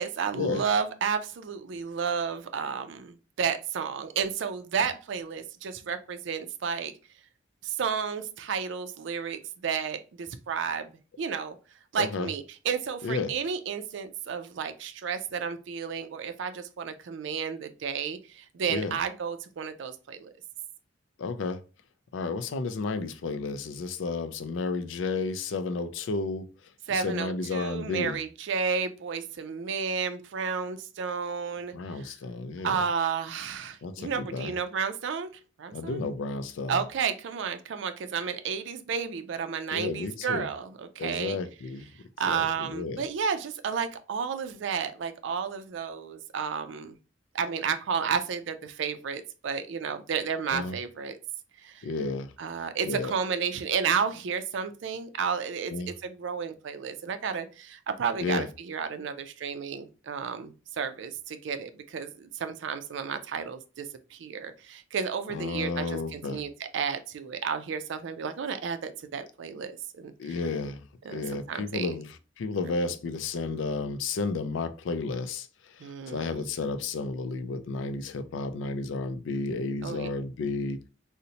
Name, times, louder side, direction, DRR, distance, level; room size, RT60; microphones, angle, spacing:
voice 1, 0.0-6.9 7.6-10.9 11.2-11.6 11.9-20.3 26.9-32.1 32.6-35.3 35.6-36.0 36.7-41.4 42.2-47.0 47.3-51.2 51.6-51.9 52.4-70.4 71.0-72.0 72.8-72.9 75.8-76.4 79.8-80.1, right 6 dB, 70° right, 0.4 m, -32 dB
voice 2, 12.0-12.3 13.0-13.3 18.7-18.9 21.2-21.6 22.1-26.5 26.9-28.2 31.7-32.8 33.8-34.5 35.7-36.8 39.7-40.5 41.0-41.9 42.3-43.0 50.5-50.8 51.8-52.3 52.8-53.1 55.7-55.9 58.2-58.5 65.3-66.4 70.2-70.8 71.1-80.8, left 3 dB, 75° left, 0.4 m, -32 dB
3.9 x 2.1 x 2.7 m
head